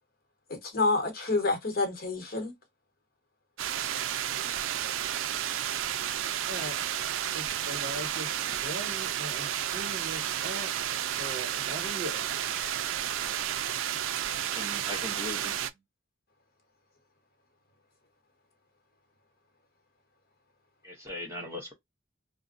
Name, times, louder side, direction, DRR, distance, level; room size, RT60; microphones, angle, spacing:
voice 1, 0.5-2.5 12.6-12.7, left 3 dB, 50° left, 0.9 m, -28 dB
sound 1, 3.6-15.7, right 10 dB, 85° right, 0.3 m, -32 dB
voice 2, 6.5-6.8 7.3-10.7 11.2-12.3, right 1 dB, 50° right, 1.3 m, -40 dB
voice 3, 14.4-15.5 20.8-21.7, left 1 dB, 15° right, 0.7 m, -39 dB
2.5 x 2.1 x 2.4 m
head